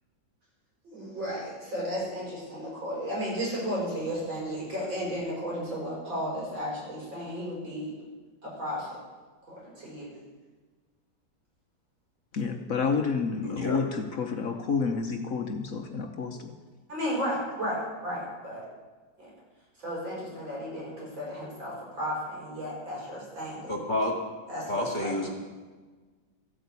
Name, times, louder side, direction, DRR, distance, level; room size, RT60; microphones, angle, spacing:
voice 1, 0.8-7.9 8.4-8.9 9.5-10.1 16.9-18.6 19.2-19.3 19.8-23.7 24.5-25.2, equal, 85° right, -5 dB, 7.1 m, -34 dB
voice 2, 12.3-16.5, left 5 dB, 55° left, 4 dB, 1.2 m, -29 dB
voice 3, 13.4-13.8 23.7-24.1 24.7-25.3, left 1 dB, 25° left, 1 dB, 1.9 m, -29 dB
14.5 x 8.5 x 8.2 m, 1.4 s
omnidirectional pair, 2.0 m